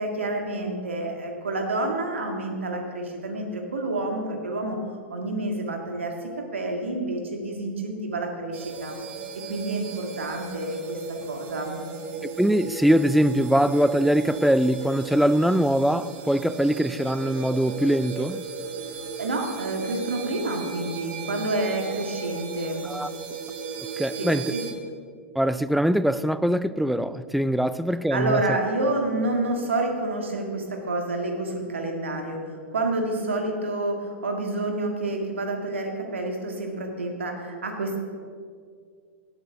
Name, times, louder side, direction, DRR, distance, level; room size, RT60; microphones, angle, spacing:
voice 1, 0.0-9.0 9.5-11.0 11.3-11.8 19.2-22.9 24.2-24.6 28.1-38.0, right 2 dB, 75° right, 1.9 m, -29 dB
sound 1, 8.5-24.7, right 5 dB, 45° right, 1.9 m, -37 dB
voice 2, 12.4-18.4 22.8-23.1 24.0-24.5 25.3-28.4, equal, ahead, 0.3 m, -22 dB
17.5 x 8.9 x 3.6 m
figure-of-eight pair, 100°, 7 cm